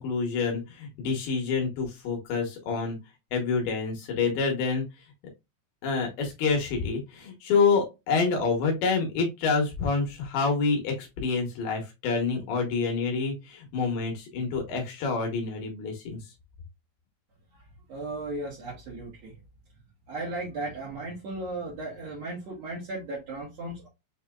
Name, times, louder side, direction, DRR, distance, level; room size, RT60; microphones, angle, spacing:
voice 1, 0.0-3.0 3.3-4.9 5.8-16.2, left 4 dB, 70° left, 2.7 m, -27 dB
voice 2, 17.9-19.3 20.1-23.9, right 2 dB, 70° right, 1.5 m, -36 dB
6.5 x 2.7 x 2.3 m
omnidirectional pair, 5.0 m